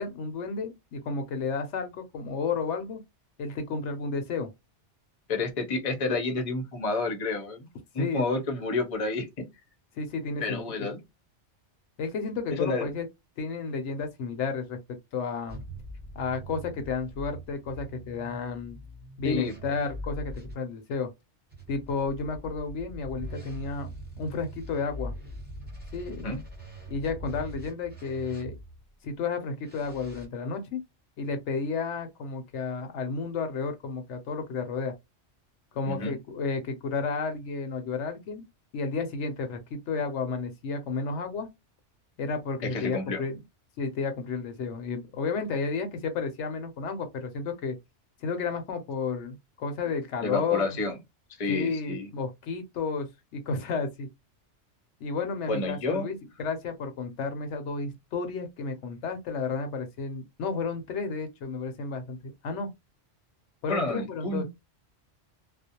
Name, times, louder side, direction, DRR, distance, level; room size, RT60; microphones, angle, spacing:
voice 1, 0.0-3.0 3.4-4.5 8.0-8.2 10.0-10.9 12.0-13.1 13.4-14.8 15.1-15.6 16.2-18.8 19.2-21.1 21.7-23.9 24.2-25.1 25.9-26.3 26.9-28.6 29.0-30.8 31.2-34.9 35.7-38.4 38.7-41.5 42.2-43.4 43.8-47.8 48.2-50.8 51.5-54.1 55.0-62.7 63.6-64.5, left 4 dB, 80° left, 0.9 m, -32 dB
voice 2, 5.3-7.7 7.9-9.3 10.4-11.0 12.5-12.9 19.2-19.5 26.2-26.4 35.8-36.1 42.6-43.2 50.2-50.9 51.4-52.1 55.5-56.1 63.7-64.5, left 3 dB, 35° left, 0.6 m, -29 dB
sound 1, 15.5-20.6 21.5-28.9 29.6-30.3, right 1 dB, 10° right, 0.8 m, -42 dB
2.4 x 2.0 x 2.7 m
omnidirectional pair, 1.2 m